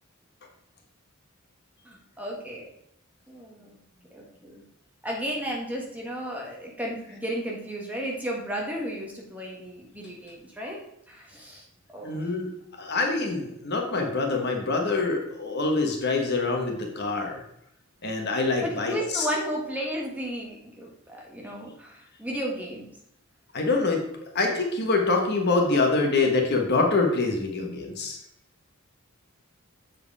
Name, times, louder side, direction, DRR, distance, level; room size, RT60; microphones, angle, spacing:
voice 1, 1.8-2.6 3.3-3.8 4.1-4.6 5.0-10.8 11.1-11.6 11.9-12.1 18.6-22.8, equal, 5° right, -2 dB, 1.5 m, -34 dB
voice 2, 12.0-12.5 12.8-17.4 18.0-19.3 23.5-24.0 24.3-28.2, left 3 dB, 50° left, 2 dB, 1.3 m, -25 dB
7.4 x 4.8 x 4.8 m, 0.77 s
head